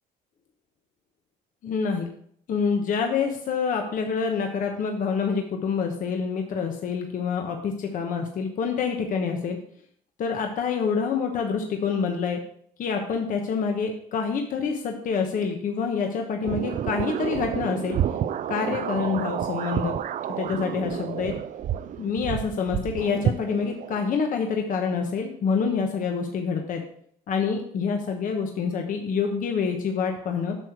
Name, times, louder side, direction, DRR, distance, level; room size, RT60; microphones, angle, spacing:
voice 1, 1.6-2.1 2.5-9.6 10.2-12.4 12.8-18.0 18.5-19.9 20.3-21.3 22.0-26.8 27.3-30.6, left 5 dB, 55° left, 3 dB, 1.1 m, -27 dB
sound 1, 16.4-24.0, right 10 dB, 50° right, 0.5 m, -30 dB
7.6 x 6.5 x 4.6 m, 0.65 s
cardioid pair, 110°, 17 cm